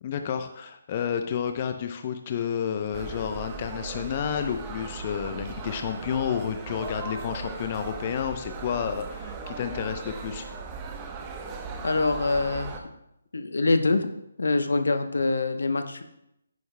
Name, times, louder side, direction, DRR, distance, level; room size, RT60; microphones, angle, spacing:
voice 1, 0.0-10.5, left 8 dB, 35° left, 7 dB, 0.6 m, -30 dB
sound 1, 2.9-12.8, right 4 dB, 20° right, 0.9 m, -38 dB
voice 2, 11.8-12.7 13.3-14.1 14.4-16.0, left 3 dB, 75° left, 8 dB, 0.9 m, -24 dB
11.0 x 9.4 x 2.2 m, 0.82 s
figure-of-eight pair, 150°, 0 cm